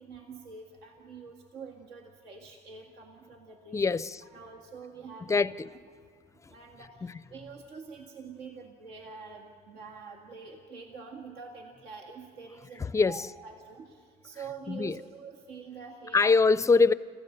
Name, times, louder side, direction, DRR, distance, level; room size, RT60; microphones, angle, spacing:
voice 1, 0.0-3.8 4.2-5.4 6.5-16.5, right 5 dB, 85° right, 2.0 m, -46 dB
voice 2, 3.7-4.2 5.3-5.7 7.0-7.1 12.8-13.3 14.7-14.9 16.1-16.9, left 4 dB, 20° left, 0.5 m, -23 dB
27.0 x 15.5 x 6.6 m
cardioid pair, 110°, 17 cm